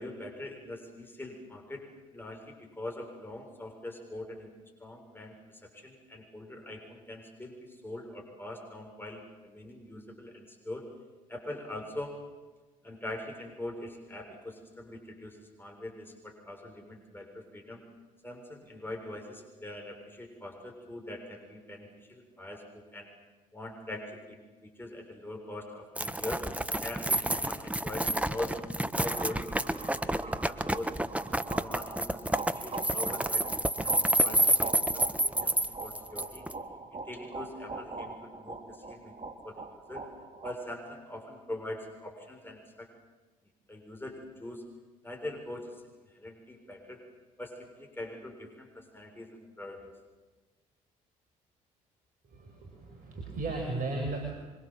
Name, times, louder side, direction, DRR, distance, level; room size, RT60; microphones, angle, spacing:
voice 1, 0.0-1.9 2.1-4.5 4.8-10.9 11.3-12.2 12.8-17.8 18.2-23.1 23.5-26.4 26.8-28.6 29.0-31.1 31.6-33.4 33.8-33.9 34.2-34.9 35.2-35.5 35.8-36.4 36.9-40.1 40.4-42.9 43.7-44.7 45.0-45.9 46.1-47.0 47.4-49.9, left 1 dB, 10° left, 2 dB, 7.3 m, -42 dB
sound 1, 26.0-36.5, right 1 dB, 5° right, 1.5 m, -29 dB
sound 2, 29.0-40.5, right 3 dB, 35° right, 3.3 m, -42 dB
voice 2, 52.3-54.3, right 2 dB, 50° right, 2 dB, 6.2 m, -35 dB
26.5 x 25.0 x 7.7 m, 1.3 s
hypercardioid pair, 50°, 18 cm